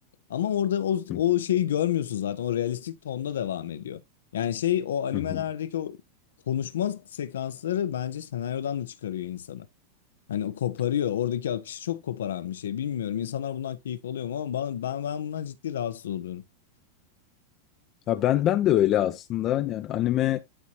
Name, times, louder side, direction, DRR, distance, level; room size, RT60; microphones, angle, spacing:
voice 1, 0.3-4.0 4.3-6.0 6.5-9.7 10.3-16.4, left 10 dB, 75° left, 0.8 m, -29 dB
voice 2, 18.1-20.4, left 13 dB, 40° left, 0.6 m, -24 dB
11.0 x 4.1 x 2.9 m
hypercardioid pair, 100°, 0 cm